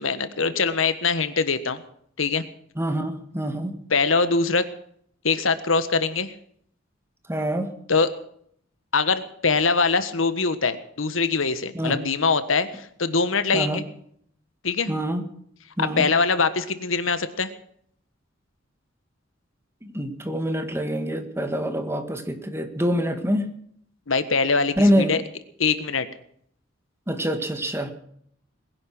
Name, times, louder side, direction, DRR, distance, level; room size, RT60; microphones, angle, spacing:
voice 1, 0.0-1.8 2.2-2.4 3.9-4.6 5.2-6.3 7.9-8.1 8.9-13.8 14.6-14.9 15.8-17.5 24.1-25.2 25.6-26.1, left 4 dB, 85° left, 12 dB, 1.4 m, -23 dB
voice 2, 2.8-3.8 7.3-7.7 11.7-12.0 13.5-13.8 14.9-15.2 15.8-16.1 19.8-23.5 24.8-25.2 27.1-27.9, equal, 15° right, 7 dB, 2.0 m, -25 dB
21.0 x 11.0 x 6.2 m, 0.66 s
head